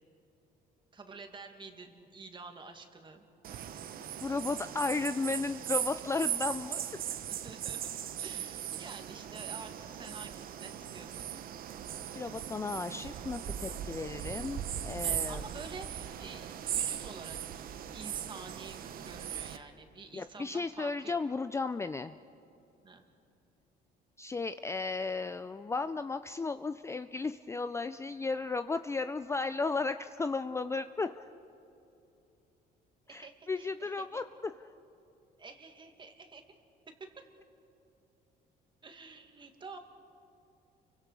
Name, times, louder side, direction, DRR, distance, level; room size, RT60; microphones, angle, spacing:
voice 1, 0.9-3.3 7.0-7.8 8.2-11.3 15.0-17.6 17.9-21.2 22.8-23.0 33.1-34.2 35.4-36.4 36.9-37.3 38.8-39.8, right 4 dB, 30° right, 5 dB, 2.2 m, -49 dB
sound 1, 3.4-19.6, right 10 dB, 60° right, 1.0 m, -38 dB
voice 2, 4.0-6.8 12.1-15.4 20.1-22.2 24.2-31.3 33.1-34.5, left 4 dB, 15° left, 11 dB, 0.4 m, -34 dB
30.0 x 24.0 x 4.9 m, 2.8 s
cardioid pair, 110°, 17 cm